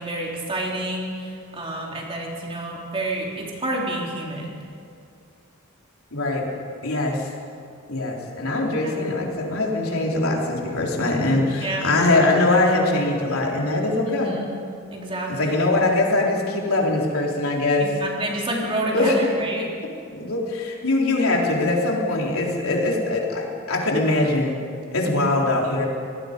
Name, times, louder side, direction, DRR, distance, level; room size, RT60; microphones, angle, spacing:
voice 1, 0.0-4.5 8.8-8.9 11.6-11.9 14.1-14.5 14.9-15.6 17.8-19.7 25.1-25.2, right 1 dB, 25° right, -2 dB, 3.6 m, -29 dB
voice 2, 6.1-6.5 6.8-7.3 7.9-14.4 15.4-17.9 18.9-19.2 20.1-24.6 24.9-25.9, left 2 dB, 80° left, -1 dB, 3.9 m, -22 dB
27.0 x 19.0 x 5.3 m, 2.4 s
head